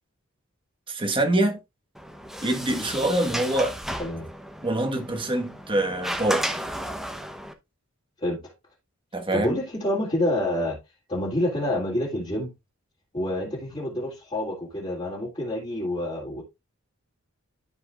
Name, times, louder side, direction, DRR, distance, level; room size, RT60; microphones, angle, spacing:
voice 1, 0.9-1.6 2.4-3.8 4.6-6.4 9.1-9.5, right 1 dB, 25° right, 1.4 m, -25 dB
Sliding door, 1.9-7.5, equal, ahead, 0.8 m, -33 dB
voice 2, 8.2-8.5 9.3-10.8 11.1-12.5 13.1-16.4, left 1 dB, 25° left, 2.1 m, -28 dB
13.0 x 4.8 x 2.4 m
head